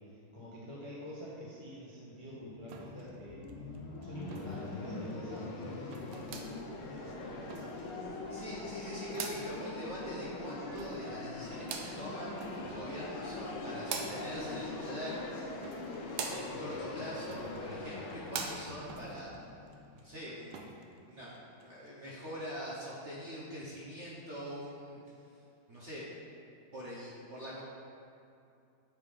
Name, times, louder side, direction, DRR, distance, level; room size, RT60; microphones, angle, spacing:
voice 1, 0.0-3.7 4.0-5.9 6.8-7.5, left 1 dB, 40° left, -7 dB, 0.4 m, -46 dB
sound 1, 2.2-20.1, left 2 dB, 75° left, 1.5 m, -42 dB
sound 2, 2.7-22.1, right 3 dB, 90° right, 1.5 m, -56 dB
sound 3, 6.0-19.0, right 5 dB, 75° right, 1.3 m, -46 dB
voice 2, 8.3-15.2 16.3-19.3 19.9-21.4 21.6-25.0 25.7-26.0 26.7-27.6, equal, 50° right, -6 dB, 0.9 m, -43 dB
7.8 x 3.6 x 4.9 m, 2.6 s
omnidirectional pair, 2.3 m